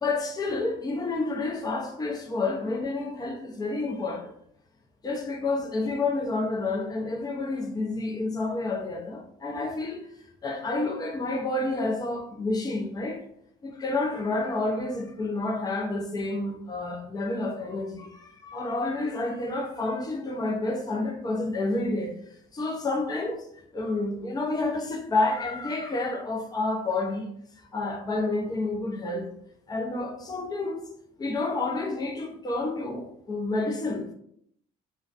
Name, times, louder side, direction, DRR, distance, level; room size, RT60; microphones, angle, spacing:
voice 1, 0.0-4.3 5.0-10.0 10.4-13.2 13.6-22.1 22.5-23.5 23.7-27.3 27.7-29.3 29.7-30.8 31.2-34.1, left 2 dB, 25° left, 0.5 m, -29 dB
2.4 x 2.2 x 2.4 m
cardioid pair, 110°, 17 cm